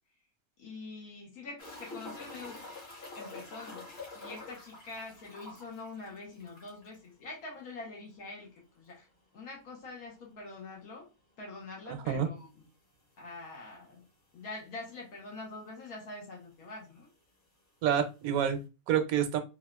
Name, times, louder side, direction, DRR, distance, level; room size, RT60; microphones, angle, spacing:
voice 1, 0.6-2.6 3.1-3.9 4.1-8.5 8.8-9.0 9.3-11.1 11.4-12.5 13.2-14.0 14.3-17.1, left 3 dB, 80° left, -2 dB, 1.4 m, -45 dB
sound 1, 1.6-7.0 7.2-7.3 7.7-7.8 10.6-10.7 12.4-12.5 13.2-13.3 13.6-13.7 14.6-14.7 14.8-15.4 16.4-16.5, left 3 dB, 45° left, 1.3 m, -47 dB
voice 2, 11.9-12.3 17.8-19.4, right 8 dB, 75° right, 8 dB, 1.0 m, -28 dB
4.1 x 2.3 x 2.2 m, 0.29 s
omnidirectional pair, 1.5 m